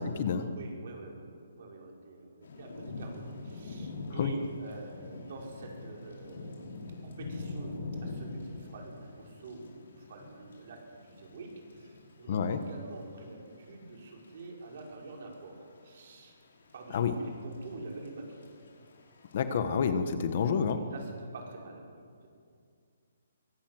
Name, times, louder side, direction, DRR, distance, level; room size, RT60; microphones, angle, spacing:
voice 1, 0.0-0.5 4.2-4.3 12.3-12.6 16.9-17.1 19.3-20.8, left 6 dB, 35° left, 9 dB, 1.3 m, -28 dB
voice 2, 0.5-16.4 16.7-18.4 20.7-22.3, right 3 dB, 40° right, 0 dB, 5.4 m, -47 dB
Thunder / Rain, 2.4-19.4, left 2 dB, 65° left, 5.8 m, -45 dB
24.0 x 18.5 x 7.8 m, 2.2 s
hypercardioid pair, 175°, 0 cm